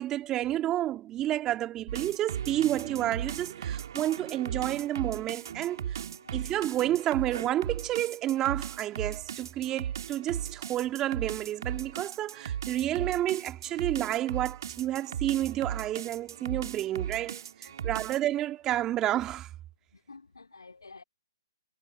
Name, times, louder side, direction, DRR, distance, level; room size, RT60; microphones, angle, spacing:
voice 1, 0.0-6.0 6.3-19.5, right 13 dB, 20° right, 2.3 m, -30 dB
sound 1, 1.9-18.3, right 9 dB, 60° right, 2.2 m, -37 dB
voice 2, 6.0-6.4 17.6-18.1 19.9-21.0, left 4 dB, 85° left, 3.4 m, -52 dB
figure-of-eight pair, 130°, 2 cm